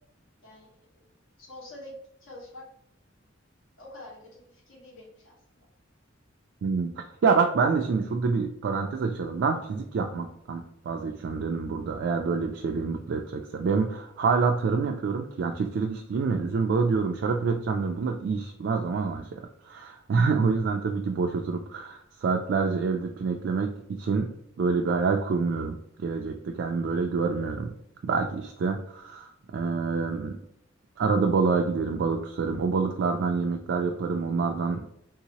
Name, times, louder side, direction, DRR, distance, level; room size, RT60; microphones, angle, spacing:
voice 1, 1.4-1.9 2.2-2.6 3.8-5.7, left 1 dB, 75° left, -3 dB, 1.3 m, -46 dB
voice 2, 6.6-6.9 7.2-27.7 28.0-30.4 31.0-34.8, right 4 dB, 60° right, 2 dB, 0.3 m, -27 dB
3.4 x 2.8 x 2.9 m, 0.71 s
head